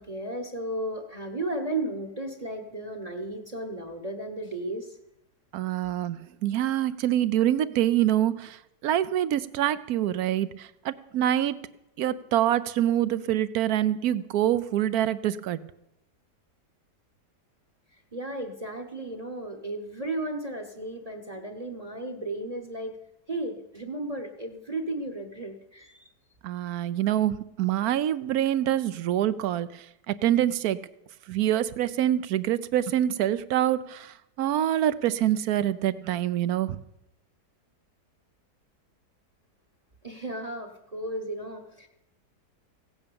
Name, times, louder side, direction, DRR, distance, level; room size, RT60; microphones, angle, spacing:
voice 1, 0.0-5.0 18.1-22.9 23.3-26.0 40.0-41.9, right 1 dB, 25° right, 6 dB, 1.0 m, -34 dB
voice 2, 5.5-11.6 12.0-15.6 26.4-30.8 31.3-36.8, right 12 dB, 70° right, 16 dB, 1.1 m, -26 dB
16.5 x 8.8 x 7.0 m, 0.87 s
omnidirectional pair, 1.7 m